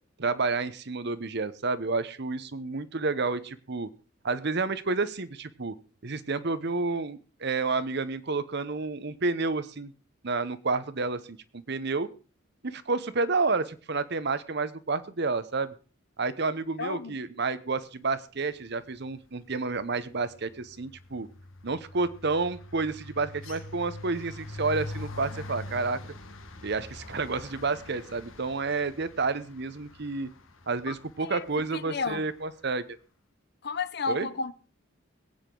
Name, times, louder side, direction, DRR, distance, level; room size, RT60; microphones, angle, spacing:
voice 1, 0.2-3.9 4.2-5.7 6.0-9.9 10.2-12.1 12.6-15.7 16.2-21.3 21.6-26.0 26.6-30.3 30.7-32.8 34.1-34.3, right 3 dB, 55° right, 0.9 m, -30 dB
voice 2, 16.8-17.1 30.9-31.0 31.2-31.5 31.7-32.2 33.6-34.5, left 4 dB, 55° left, 0.8 m, -32 dB
sound 1, 18.8-19.1 19.4-32.5, left 1 dB, 85° left, 1.7 m, -44 dB
21.5 x 8.9 x 3.8 m
head